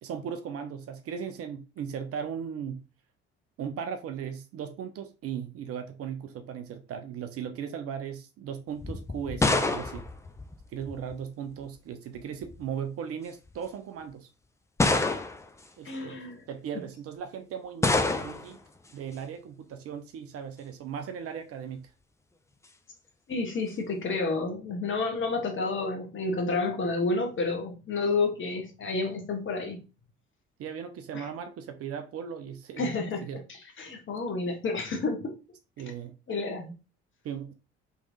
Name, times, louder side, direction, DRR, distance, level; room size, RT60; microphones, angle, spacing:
voice 1, 0.0-2.8 3.6-10.0 10.7-14.3 15.8-18.6 18.9-21.9 30.6-32.9 33.2-33.4 35.8-36.2 37.2-37.5, right 8 dB, 45° right, 0.6 m, -37 dB
sound 1, 8.8-11.1 12.2-12.6 13.5-13.6 14.8-15.6 17.8-18.6, left 2 dB, 10° left, 0.4 m, -27 dB
voice 2, 15.8-16.4 23.3-29.8 31.1-31.3 32.8-33.3 33.8-35.3 36.3-36.7, left 3 dB, 35° left, 1.1 m, -30 dB
3.5 x 3.1 x 2.5 m
figure-of-eight pair, 45°, 34 cm